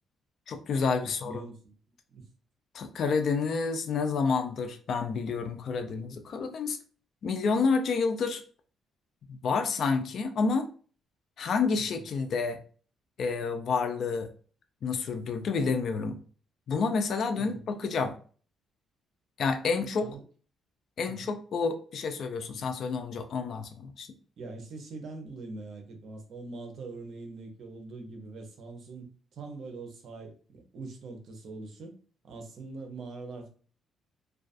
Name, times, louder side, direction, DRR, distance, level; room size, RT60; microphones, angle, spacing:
voice 1, 0.5-1.4 2.7-6.8 7.2-8.4 9.3-10.7 11.4-12.6 13.2-14.3 14.8-16.2 16.7-18.1 19.4-20.1 21.0-24.1, left 4 dB, 60° left, 7 dB, 0.4 m, -29 dB
voice 2, 1.0-1.7 2.1-2.3 11.7-12.0 17.4-17.6 20.0-20.2 21.0-21.3 24.4-32.0 32.2-33.5, right 3 dB, 60° right, 4 dB, 0.6 m, -43 dB
2.3 x 2.3 x 2.5 m, 0.41 s
cardioid pair, 100°, 0 cm